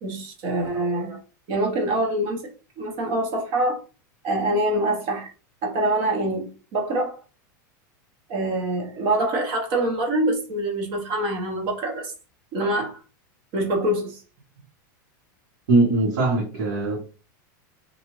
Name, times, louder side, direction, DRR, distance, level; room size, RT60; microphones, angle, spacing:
voice 1, 0.0-1.2 1.5-2.4 2.8-3.8 4.2-5.3 5.6-7.2 8.3-12.1 12.5-13.0 13.5-14.2, right 1 dB, 40° right, 0.9 m, -25 dB
voice 2, 15.7-17.1, right 2 dB, 75° right, 1.4 m, -21 dB
2.7 x 2.4 x 3.0 m
supercardioid pair, 160°, 10 cm